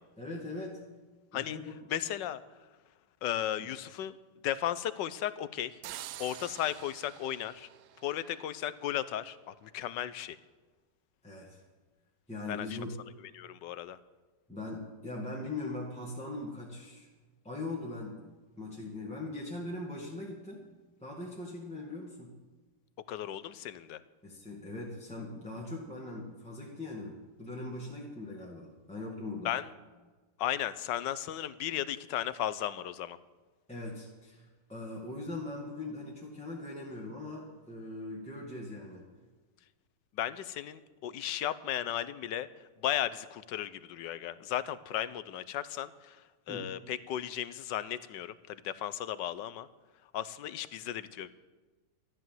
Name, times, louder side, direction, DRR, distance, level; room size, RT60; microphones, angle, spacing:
voice 1, 0.2-0.8 1.3-1.6 11.2-11.6 12.3-13.0 14.5-17.1 17.4-18.3 18.6-20.6 21.0-22.3 24.2-29.6 33.7-34.4 34.7-39.1 46.5-46.7, left 2 dB, 5° left, -4 dB, 2.1 m, -40 dB
voice 2, 1.9-2.4 3.2-4.1 4.4-5.8 6.2-7.7 8.0-10.4 12.5-12.8 13.3-14.0 23.1-24.0 29.4-29.7 30.4-33.2 40.1-42.5 42.8-46.2 46.5-49.7 50.1-51.3, left 11 dB, 90° left, 15 dB, 1.4 m, -35 dB
sound 1, 5.8-8.7, right 12 dB, 75° right, 1.2 m, -47 dB
13.5 x 12.5 x 7.6 m, 1.3 s
omnidirectional pair, 1.9 m